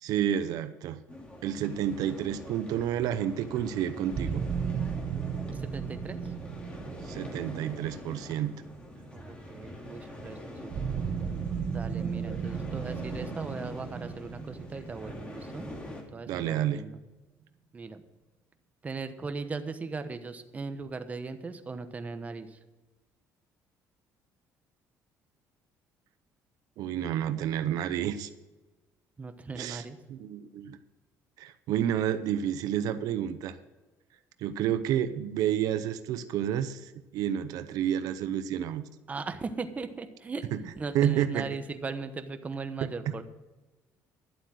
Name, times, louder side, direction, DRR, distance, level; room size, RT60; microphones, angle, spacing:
voice 1, 0.0-1.0 1.4-4.4 7.0-8.5 16.3-16.8 26.8-28.3 29.6-29.8 30.1-30.8 31.4-33.6 34.4-38.8 40.5-40.6 40.9-41.5 42.8-42.9, right 10 dB, 75° right, 11 dB, 0.7 m, -30 dB
sound 1, 1.1-16.0, left 1 dB, 20° left, 2.5 m, -44 dB
sound 2, 4.1-9.1 10.7-16.4, right 7 dB, 55° right, 1.7 m, -35 dB
voice 2, 5.5-6.3 9.1-10.9 11.7-15.7 16.1-17.0 17.7-18.0 18.8-22.6 29.2-30.0 39.1-43.2, right 4 dB, 25° right, 9 dB, 1.0 m, -38 dB
11.5 x 7.9 x 6.3 m, 1.1 s
cardioid pair, 125°, 6 cm